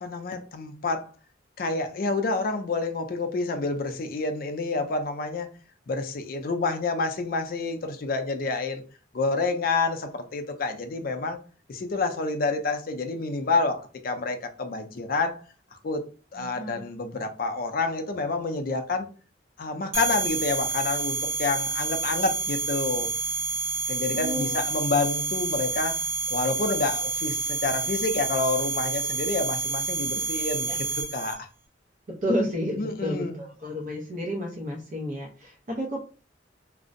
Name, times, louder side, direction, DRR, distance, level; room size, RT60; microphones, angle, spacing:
voice 1, 0.0-1.1 1.6-5.5 5.9-8.8 9.1-11.4 11.7-15.4 15.8-16.0 16.3-19.1 19.6-23.1 23.9-31.5 32.8-33.4, left 3 dB, 50° left, 0.4 m, -28 dB
voice 2, 16.3-16.8 24.1-24.6 30.7-30.8 32.1-36.0, equal, 45° right, 0.5 m, -31 dB
sound 1, 19.9-31.3, right 4 dB, 85° right, 1.0 m, -29 dB
2.5 x 2.0 x 2.5 m
head